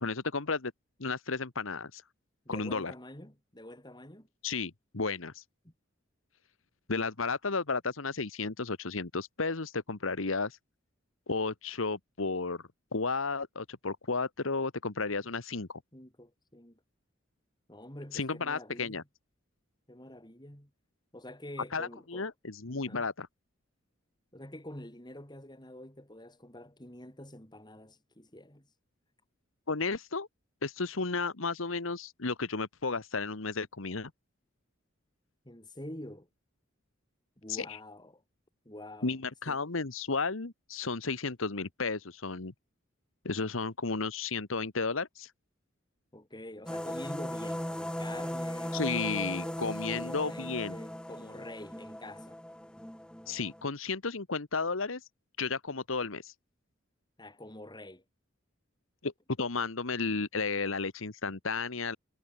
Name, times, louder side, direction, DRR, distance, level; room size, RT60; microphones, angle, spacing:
voice 1, 0.0-0.7 1.0-2.0 2.5-2.9 4.4-5.4 6.9-10.6 11.3-12.6 12.9-15.8 18.1-19.0 21.7-23.3 29.7-30.3 30.6-34.1 37.5-37.6 39.0-42.5 43.2-45.3 48.7-50.7 53.3-55.0 55.4-56.3 59.0-59.1 59.4-62.0, left 4 dB, 85° left, 1.4 m, -33 dB
voice 2, 2.5-4.3 5.6-5.7 15.9-16.8 17.7-19.0 19.9-20.7 21.1-22.3 22.8-23.1 24.3-28.7 35.4-36.3 37.4-38.2 38.6-39.2 39.5-39.6 46.1-49.6 49.9-52.4 57.2-58.0, left 1 dB, 20° left, 7.2 m, -47 dB
sound 1, 46.7-53.6, equal, 5° left, 1.7 m, -38 dB
head